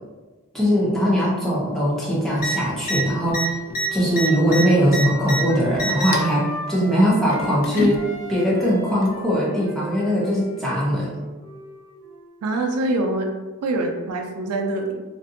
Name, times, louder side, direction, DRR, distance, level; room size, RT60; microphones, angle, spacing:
voice 1, 0.5-3.6 3.9-8.0 8.3-11.1, equal, ahead, -7 dB, 0.6 m, -20 dB
sound 1, 2.4-2.5 2.8-3.0 3.3-5.4 5.7-6.3 7.3-8.0 9.0-9.1, right 1 dB, 40° left, 0.3 m, -25 dB
Wind instrument woodwind instrument, 3.0-7.6 7.9-12.4, equal, 40° right, 0.9 m, -38 dB
voice 2, 12.4-13.3 13.6-15.0, right 2 dB, 85° right, 4 dB, 0.4 m, -24 dB
2.5 x 2.5 x 2.5 m, 1.2 s
head